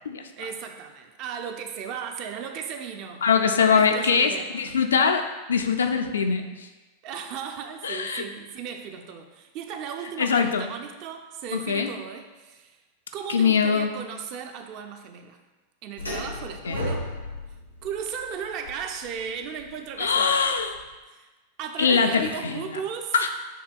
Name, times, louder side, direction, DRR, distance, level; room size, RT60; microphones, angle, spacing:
voice 1, 0.4-3.2 3.6-4.7 7.0-12.8 13.1-15.4 15.8-17.1 17.8-20.4 21.1-21.3 21.6-23.1, right 7 dB, 40° right, 5 dB, 0.4 m, -36 dB
voice 2, 3.2-5.2 5.5-6.7 7.8-8.2 10.2-10.6 11.5-11.9 13.3-13.9 16.6-16.8 20.0-20.7 21.8-22.8 23.1-23.3, left 6 dB, 70° left, 5 dB, 0.3 m, -22 dB
sound 1, 16.0-20.9, left 1 dB, 85° left, 0.7 m, -35 dB
6.5 x 2.7 x 2.2 m, 1.2 s
figure-of-eight pair, 90°, 0 cm